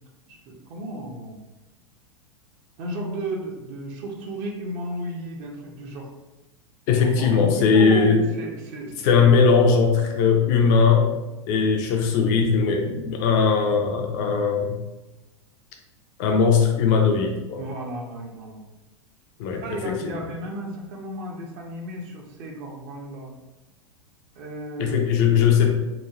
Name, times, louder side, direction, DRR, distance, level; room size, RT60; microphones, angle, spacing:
voice 1, 0.3-1.4 2.8-6.1 7.0-9.2 17.6-18.6 19.5-23.3 24.4-25.1, right 1 dB, 40° right, 1 dB, 0.5 m, -34 dB
voice 2, 6.9-8.2 9.0-11.1 11.5-14.8 16.2-17.6 19.4-20.2 24.8-25.7, left 5 dB, 40° left, 3 dB, 0.4 m, -19 dB
3.0 x 2.2 x 2.4 m, 1.0 s
figure-of-eight pair, 90°, 16 cm